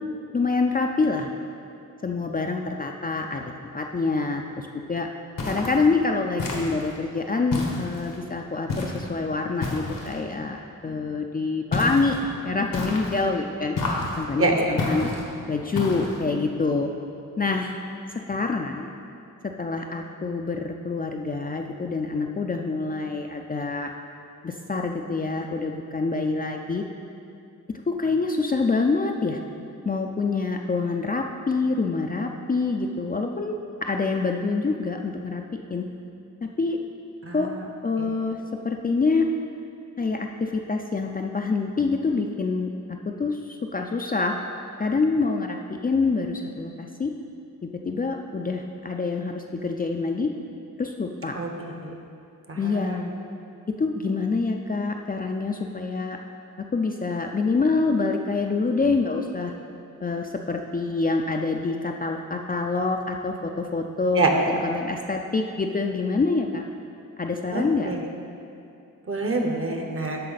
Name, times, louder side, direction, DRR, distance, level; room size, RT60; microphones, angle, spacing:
voice 1, 0.3-1.3 2.0-3.4 3.7-5.1 5.5-12.2 12.4-13.8 14.2-15.1 15.5-16.9 17.4-17.8 18.3-18.9 19.6-23.9 24.4-26.8 27.9-29.4 29.9-35.4 35.7-35.9 36.6-36.8 37.3-37.5 37.8-38.4 38.6-39.3 40.0-42.7 43.1-44.3 44.8-47.1 47.8-50.3 50.8-51.3 52.6-53.1 53.8-56.2 56.6-59.5 60.0-66.6 67.2-67.9, left 3 dB, 25° left, 2 dB, 0.4 m, -26 dB
sound 1, 5.4-5.8 6.4-7.0 7.5-8.2 8.7-9.1 9.6-10.2 11.7-12.2 12.7-13.2 13.8-14.2 14.8-15.2 15.8-16.2, left 2 dB, 85° left, 1.3 m, -29 dB
voice 2, 14.4-14.7 37.2-37.6 38.0-38.1 51.3-51.5 51.8-52.0 52.5-53.1 64.2-64.3 67.5-68.0 69.1-70.2, right 3 dB, 45° right, 2 dB, 1.0 m, -26 dB
12.0 x 4.2 x 4.0 m, 2.7 s
wide cardioid pair, 90°, 33 cm